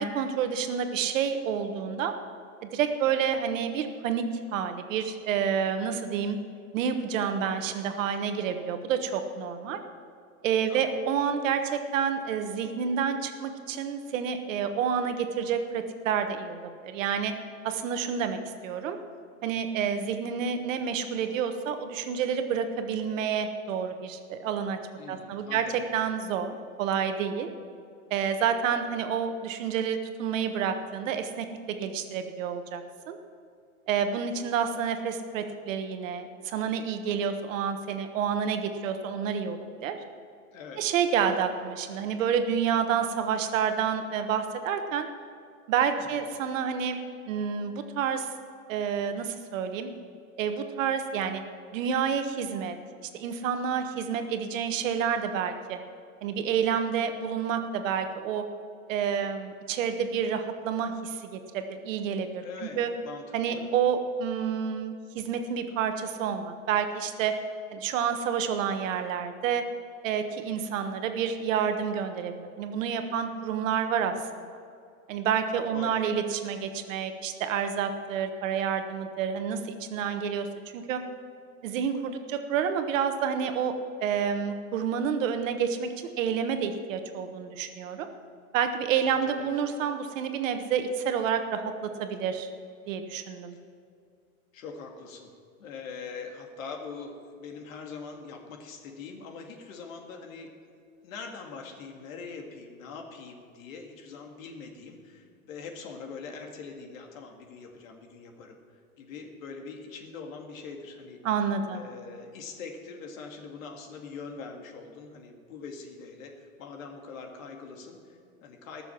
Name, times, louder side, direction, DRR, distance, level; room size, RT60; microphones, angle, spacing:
voice 1, 0.0-2.1 2.6-4.2 4.5-6.4 6.7-9.8 10.4-17.3 17.6-19.0 19.4-24.8 25.1-25.6 25.9-27.5 28.1-33.2 33.9-40.0 40.8-45.1 45.7-47.0 47.3-48.3 48.7-49.9 50.4-51.4 51.7-52.8 53.1-55.8 56.2-58.4 58.9-62.4 62.8-62.9 63.3-67.3 67.7-69.6 70.0-74.1 75.1-80.5 80.7-81.0 81.6-83.7 84.0-85.9 86.2-88.1 88.5-92.5 92.9-93.6 111.2-111.9, right 7 dB, 60° right, 7 dB, 1.4 m, -29 dB
voice 2, 25.0-25.8 40.5-40.9 46.0-46.3 62.4-63.7 75.7-76.1 89.0-89.5 93.5-93.6 94.5-95.3 95.6-100.5 101.0-111.2 111.7-118.8, left 5 dB, 65° left, 3 dB, 2.3 m, -43 dB
19.0 x 6.9 x 5.9 m, 2.3 s
hypercardioid pair, 140°, 43 cm